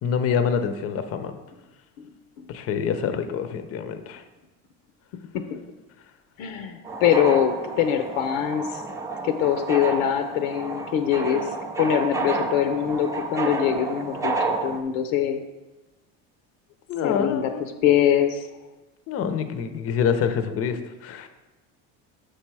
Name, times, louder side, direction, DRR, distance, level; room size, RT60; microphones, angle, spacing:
voice 1, 0.0-1.4 2.5-4.2 16.9-17.6 19.1-21.3, left 7 dB, 40° left, 9 dB, 0.6 m, -26 dB
voice 2, 6.4-8.8 9.2-15.4 17.0-17.5 17.8-18.5, left 9 dB, 90° left, 7 dB, 0.7 m, -23 dB
sound 1, 6.8-14.8, right 3 dB, 10° right, 0.3 m, -30 dB
6.6 x 4.5 x 4.7 m, 1.1 s
cardioid pair, 130°, 37 cm